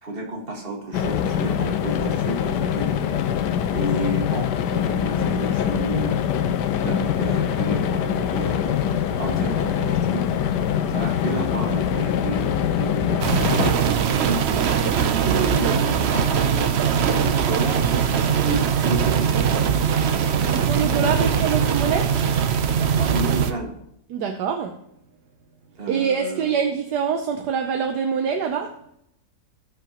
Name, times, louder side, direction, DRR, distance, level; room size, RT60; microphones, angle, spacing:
voice 1, 0.0-3.1 3.7-6.2 6.8-8.8 9.2-10.3 10.9-13.2 13.7-16.7 17.0-19.4 20.3-21.3 22.9-23.7 25.8-26.5, right 2 dB, 35° right, 0 dB, 2.1 m, -31 dB
sound 1, 0.9-13.7, left 9 dB, 85° left, 1.3 m, -23 dB
sound 2, 13.2-23.5, right 7 dB, 60° right, 0.7 m, -21 dB
voice 2, 20.6-22.1 24.1-24.7 25.9-28.7, right 6 dB, 80° right, 4 dB, 1.4 m, -24 dB
17.5 x 6.1 x 3.0 m, 0.75 s
omnidirectional pair, 1.8 m